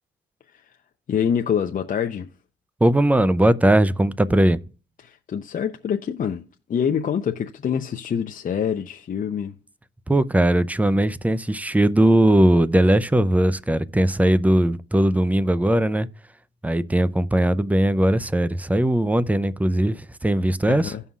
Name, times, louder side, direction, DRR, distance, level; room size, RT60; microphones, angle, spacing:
voice 1, 1.1-2.3 5.0-6.4 6.7-9.5 20.7-21.0, left 8 dB, 45° left, 0.6 m, -25 dB
voice 2, 2.8-4.6 10.1-16.1 16.6-20.9, right 1 dB, 5° right, 0.4 m, -19 dB
16.0 x 5.5 x 2.4 m
cardioid pair, 90°, 20 cm